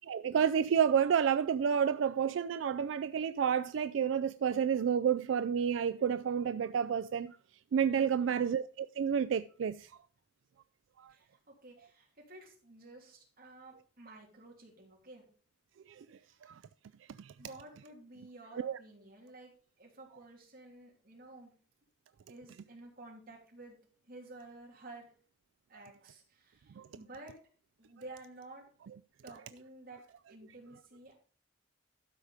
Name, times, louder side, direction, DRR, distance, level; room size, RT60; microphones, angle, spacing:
voice 1, 0.1-7.4 7.7-9.9 11.0-11.1 15.9-16.6 17.2-17.3 18.6-18.8 26.8-26.9, right 7 dB, 90° right, 0.3 m, -30 dB
voice 2, 8.2-8.5 11.1-15.3 16.2-16.4 17.4-21.5 22.3-23.8 24.1-25.1 25.7-27.4 27.8-28.7 29.2-31.1, right 2 dB, 50° right, 3.4 m, -52 dB
12.5 x 4.9 x 5.0 m
head